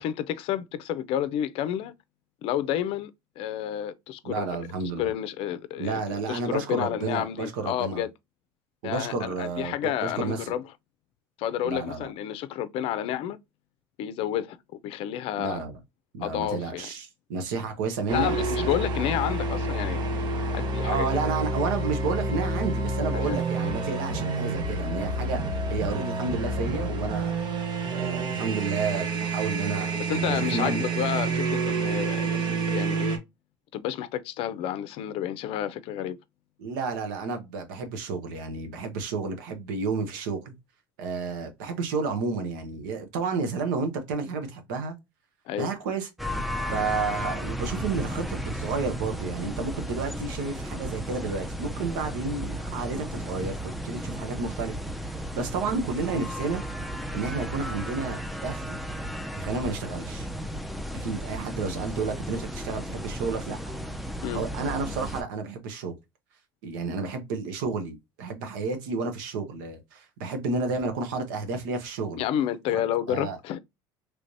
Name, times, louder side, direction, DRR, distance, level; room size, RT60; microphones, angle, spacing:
voice 1, 0.0-1.9 2.4-3.1 3.4-4.5 5.0-6.0 6.3-8.1 8.8-10.6 11.4-13.4 14.0-14.6 14.8-15.6 16.2-16.9 18.1-20.0 20.5-21.3 23.1-23.4 30.0-33.2 33.7-36.2 45.5-45.7 64.2-64.4 72.2-73.6, left 11 dB, 65° left, 0.5 m, -30 dB
voice 2, 4.2-5.1 5.8-8.0 8.8-10.5 11.6-12.1 15.4-15.8 16.1-18.7 20.8-25.4 25.7-27.3 27.9-30.8 36.6-40.5 41.0-45.0 45.6-46.1 46.7-54.7 55.1-56.6 57.1-58.8 59.4-60.3 60.9-63.7 64.3-66.0 66.6-72.2 72.7-72.8 73.1-73.4, right 4 dB, 85° right, 1.0 m, -31 dB
sound 1, 18.1-33.2, right 3 dB, 45° right, 1.0 m, -28 dB
sound 2, 46.2-65.2, equal, ahead, 0.5 m, -34 dB
3.3 x 3.2 x 2.6 m
supercardioid pair, 95°, 10 cm